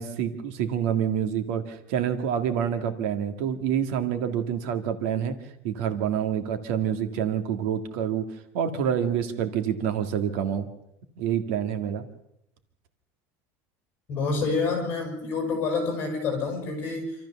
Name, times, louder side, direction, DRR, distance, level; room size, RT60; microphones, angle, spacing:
voice 1, 0.0-5.3 5.6-8.2 8.5-10.7 11.2-12.0, right 8 dB, 65° right, 8 dB, 1.9 m, -27 dB
voice 2, 14.1-17.2, left 4 dB, 25° left, 3 dB, 7.0 m, -28 dB
27.0 x 14.0 x 7.0 m, 0.78 s
cardioid pair, 180°, 8 cm